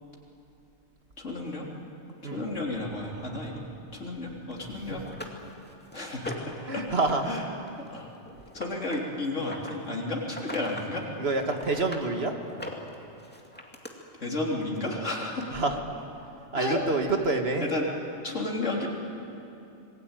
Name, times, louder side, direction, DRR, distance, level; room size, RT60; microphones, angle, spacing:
voice 1, 1.2-1.7 2.3-3.6 3.9-5.0 5.9-6.3 6.7-6.8 7.2-7.4 7.9-8.1 8.5-11.0 14.2-15.6 16.6-16.8 17.6-17.9 18.2-18.9, left 2 dB, 65° left, -2 dB, 3.8 m, -32 dB
sound 1, 4.5-4.6 5.1-6.6 7.0-7.4 7.7-9.8 10.3-10.9 11.2-12.1 12.5-13.9 14.9-15.0 15.4-15.5, left 1 dB, 5° left, 2.3 m, -41 dB
voice 2, 6.7-7.3 11.2-12.3 15.5-15.8 16.5-17.7, right 3 dB, 50° right, 4 dB, 2.0 m, -27 dB
26.5 x 20.5 x 9.1 m, 2.8 s
omnidirectional pair, 1.4 m